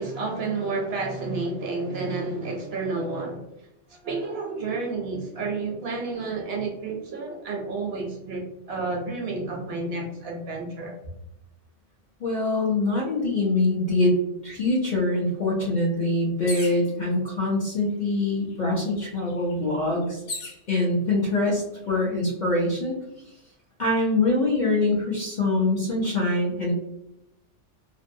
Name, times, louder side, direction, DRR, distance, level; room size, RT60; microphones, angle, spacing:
voice 1, 0.0-3.4 3.9-10.9, right 3 dB, 65° right, 0 dB, 0.7 m, -30 dB
voice 2, 12.2-14.1 14.4-20.2 20.7-22.9 23.8-26.7, left 2 dB, 50° left, -4 dB, 0.6 m, -24 dB
sound 1, 16.5-16.9 17.8-17.9 18.2-20.6 21.4-21.9, left 3 dB, 90° left, 1.1 m, -38 dB
2.6 x 2.2 x 2.5 m, 0.85 s
omnidirectional pair, 1.2 m